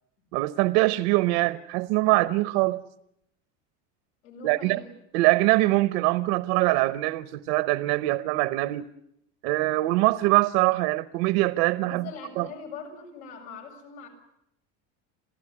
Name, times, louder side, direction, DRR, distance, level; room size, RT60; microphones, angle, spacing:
voice 1, 0.3-2.8 4.4-4.8 5.1-8.9 9.4-12.1 12.4-12.5, right 19 dB, 70° right, 0.9 m, -23 dB
voice 2, 4.2-4.9 11.8-14.1, left 5 dB, 85° left, 7.6 m, -42 dB
27.5 x 15.5 x 9.7 m
cardioid pair, 160°, 33 cm